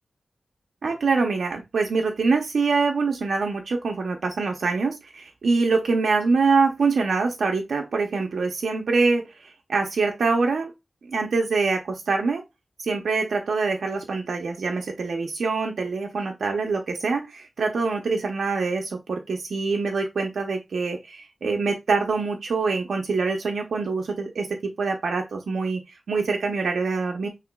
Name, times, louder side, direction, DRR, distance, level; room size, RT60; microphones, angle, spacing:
voice 1, 0.8-10.7 11.1-12.4 12.8-24.5 24.8-25.8 26.1-27.3, right 4 dB, 80° right, 2 dB, 0.7 m, -24 dB
5.8 x 3.2 x 2.3 m, 0.22 s
wide cardioid pair, 70°, 0 cm